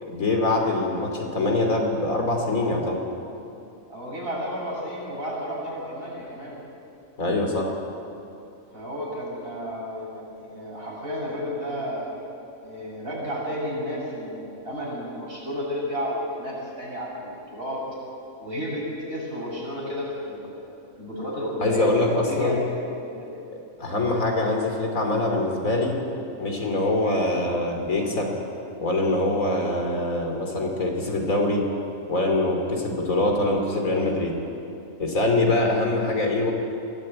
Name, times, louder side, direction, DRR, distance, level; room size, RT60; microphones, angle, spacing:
voice 1, 0.0-3.0 7.2-7.7 21.6-22.6 23.8-25.9 26.4-28.3 28.8-31.6 32.1-34.3 35.0-36.5, left 2 dB, 70° left, 2 dB, 3.3 m, -24 dB
voice 2, 3.9-6.6 8.7-12.1 12.6-17.8 18.4-20.7 21.0-21.9 22.2-22.6 23.1-23.4 26.5-26.7, equal, 40° right, -4 dB, 7.2 m, -32 dB
23.0 x 16.0 x 8.7 m, 2.7 s
omnidirectional pair, 1.5 m